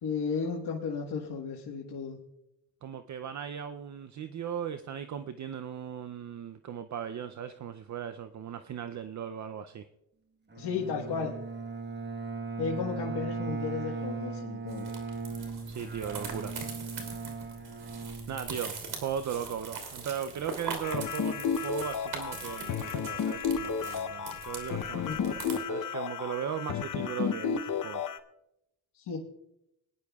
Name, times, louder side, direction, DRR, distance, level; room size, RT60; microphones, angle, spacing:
voice 1, 0.0-2.2 10.6-11.3 12.6-14.9 25.0-25.3 28.9-29.2, left 5 dB, 75° left, -3 dB, 1.5 m, -34 dB
voice 2, 2.8-9.9 15.7-16.6 18.3-28.0, right 8 dB, 45° right, 10 dB, 0.5 m, -37 dB
Bowed string instrument, 10.5-19.0, right 4 dB, 25° right, 1.2 m, -38 dB
sound 1, 14.7-25.6, right 5 dB, 70° right, 2.9 m, -42 dB
sound 2, 20.8-28.2, left 6 dB, 50° left, 0.8 m, -32 dB
22.0 x 10.5 x 2.3 m, 0.82 s
cardioid pair, 105°, 40 cm